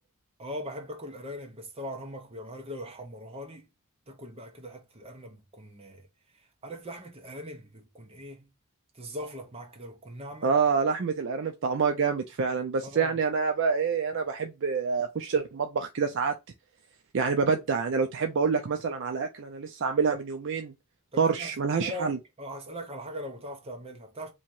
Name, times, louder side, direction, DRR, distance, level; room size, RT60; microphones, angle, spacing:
voice 1, 0.4-3.7 4.1-6.1 6.3-8.5 8.9-10.5 12.8-13.2 21.1-21.5 21.8-24.3, equal, 25° right, 0.8 m, -40 dB
voice 2, 10.4-16.3 17.1-20.7 21.2-22.2, right 5 dB, 55° right, 0.4 m, -27 dB
2.8 x 2.8 x 4.4 m
head